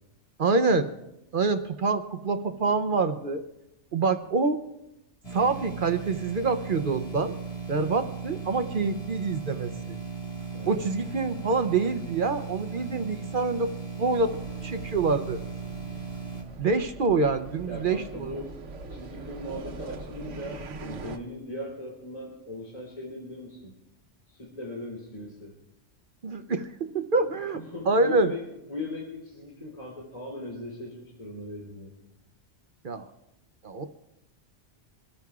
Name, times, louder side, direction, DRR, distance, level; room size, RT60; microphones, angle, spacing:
voice 1, 0.4-0.9 1.3-3.4 3.9-4.6 5.3-7.3 7.7-10.0 10.7-13.7 14.0-15.4 16.6-18.4 26.2-28.3 32.8-33.1 33.6-33.8, right 3 dB, 50° right, 8 dB, 0.8 m, -26 dB
sound 1, 5.2-16.4, right 6 dB, 60° left, 2.4 m, -37 dB
voice 2, 10.5-10.9 17.6-18.5 18.9-23.7 24.3-25.5 27.1-27.2 27.5-28.4 28.7-31.9, left 1 dB, 30° left, -4 dB, 3.3 m, -39 dB
sound 2, 14.2-21.2, right 3 dB, 90° right, 1.3 m, -42 dB
25.5 x 14.0 x 2.4 m, 0.90 s
omnidirectional pair, 1.2 m